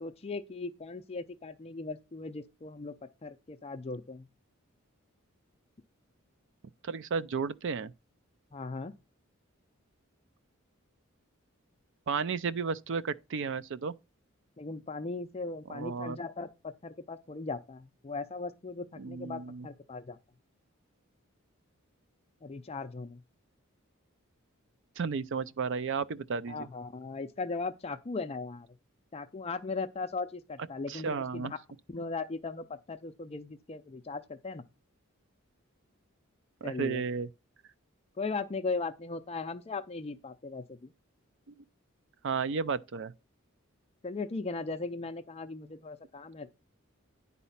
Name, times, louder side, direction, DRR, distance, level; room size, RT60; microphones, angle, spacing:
voice 1, 0.0-2.9 3.2-4.3 8.5-8.9 14.6-20.2 22.4-23.2 26.5-28.7 29.1-31.6 31.9-34.6 36.6-37.0 38.2-40.9 44.0-46.5, left 3 dB, 30° left, 0.5 m, -38 dB
voice 2, 6.8-7.9 12.1-13.9 15.7-16.2 19.0-19.7 25.0-26.7 30.9-31.5 36.6-37.3 42.2-43.1, right 5 dB, 60° right, 0.5 m, -33 dB
10.0 x 4.2 x 5.7 m
head